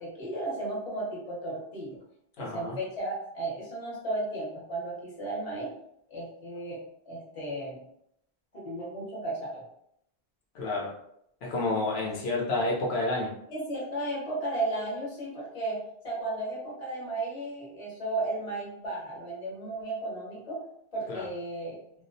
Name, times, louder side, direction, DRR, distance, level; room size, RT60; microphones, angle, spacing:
voice 1, 0.0-2.0 2.4-5.7 6.1-7.8 8.6-9.7 13.5-20.6 20.9-21.8, right 2 dB, 35° left, -5 dB, 0.9 m, -34 dB
voice 2, 2.4-2.8 10.5-10.9 11.4-13.3 21.1-21.3, left 2 dB, 75° left, -3 dB, 0.9 m, -29 dB
2.3 x 2.1 x 2.6 m, 0.74 s
omnidirectional pair, 1.1 m